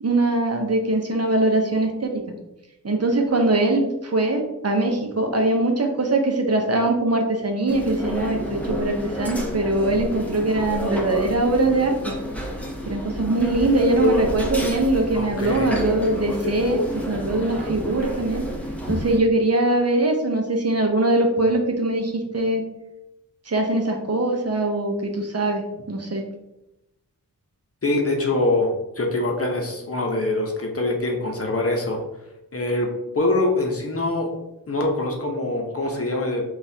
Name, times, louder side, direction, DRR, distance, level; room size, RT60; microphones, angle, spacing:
voice 1, 0.0-2.2 2.8-12.1 12.9-18.4 18.9-22.6 23.5-26.2, right 2 dB, 45° right, 2 dB, 0.7 m, -22 dB
sound 1, 7.7-19.2, equal, 5° left, 0.7 m, -29 dB
voice 2, 15.1-15.7 27.8-32.0 32.5-32.9 33.1-34.3 34.7-36.4, left 2 dB, 40° left, 1 dB, 0.8 m, -24 dB
6.1 x 2.4 x 2.7 m, 0.91 s
wide cardioid pair, 90°, 35 cm